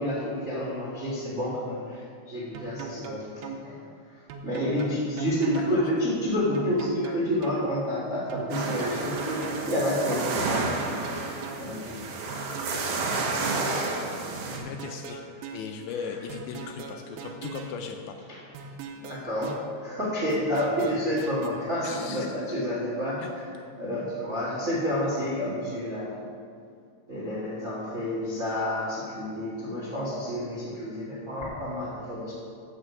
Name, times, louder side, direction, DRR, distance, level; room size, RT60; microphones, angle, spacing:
voice 1, 0.0-3.3 3.6-3.8 4.1-10.7 11.6-12.0 18.3-18.4 18.9-19.5 19.8-23.4 23.7-26.2 27.1-32.3, equal, 35° right, -6 dB, 1.1 m, -29 dB
sound 1, 2.6-3.6 4.3-5.8 6.6-7.6 8.3-9.8 10.6-11.6 12.3-13.8 14.6-15.6 16.3-17.8 18.6-19.6 20.3-21.5, right 5 dB, 85° right, 2.9 m, -39 dB
sound 2, 8.5-14.6, right 3 dB, 65° right, 2.1 m, -31 dB
voice 2, 14.0-15.2 15.5-18.2 18.6-18.8 21.8-22.3 23.2-23.3 23.6-23.7, left 6 dB, 80° left, 4 dB, 2.2 m, -38 dB
14.0 x 6.7 x 4.9 m, 2.2 s
omnidirectional pair, 4.9 m